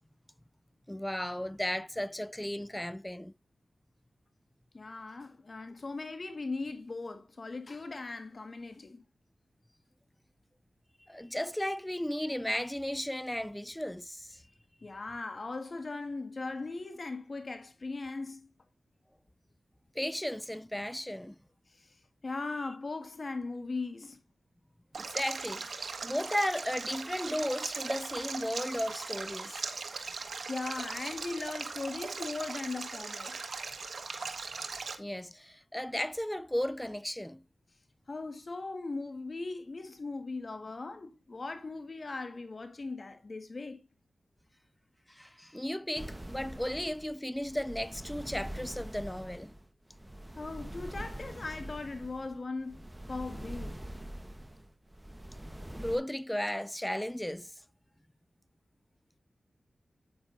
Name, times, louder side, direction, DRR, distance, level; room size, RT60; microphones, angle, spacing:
voice 1, 0.9-3.3 11.1-14.4 20.0-21.4 25.0-29.7 35.0-37.4 45.1-49.5 55.7-57.5, left 1 dB, 10° left, 0.4 m, -35 dB
voice 2, 4.7-9.0 14.8-18.5 21.7-22.0 22.2-24.2 30.5-33.4 38.1-43.8 50.4-53.7 55.7-55.8, left 3 dB, 50° left, 1.7 m, -39 dB
Stream, 24.9-35.0, right 4 dB, 70° right, 1.5 m, -39 dB
sound 1, 46.0-56.0, right 1 dB, 15° right, 1.2 m, -44 dB
9.7 x 8.7 x 2.7 m
cardioid pair, 50°, 0 cm